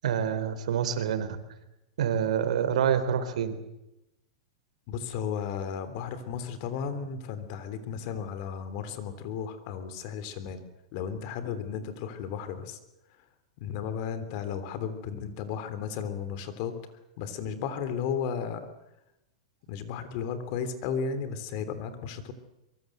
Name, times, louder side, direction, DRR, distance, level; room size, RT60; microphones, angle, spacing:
voice 1, 0.0-1.4 2.0-3.6, right 8 dB, 80° right, 11 dB, 3.5 m, -27 dB
voice 2, 4.9-10.6 10.9-12.8 13.6-16.8 17.2-18.7 19.7-22.3, left 7 dB, 45° left, 11 dB, 3.3 m, -34 dB
24.5 x 23.0 x 7.9 m, 0.92 s
supercardioid pair, 155°, 4 cm